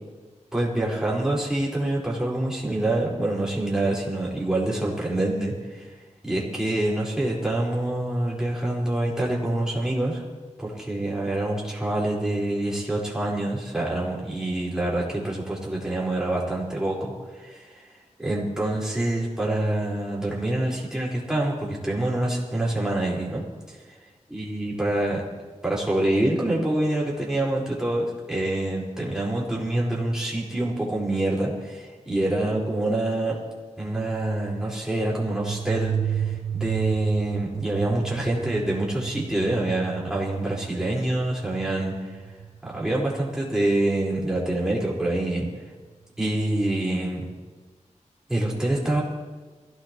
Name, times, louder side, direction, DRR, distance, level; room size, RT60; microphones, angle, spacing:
voice 1, 0.5-5.9 6.2-10.2 10.6-17.9 18.2-23.8 24.3-25.2 25.6-33.4 33.8-42.1 42.6-45.5 46.2-47.2 48.3-49.0, right 1 dB, 5° right, -5 dB, 4.4 m, -26 dB
sound 1, 35.1-43.5, right 8 dB, 70° right, 0.5 m, -33 dB
23.5 x 16.5 x 3.0 m, 1.3 s
wide cardioid pair, 130°, 12 cm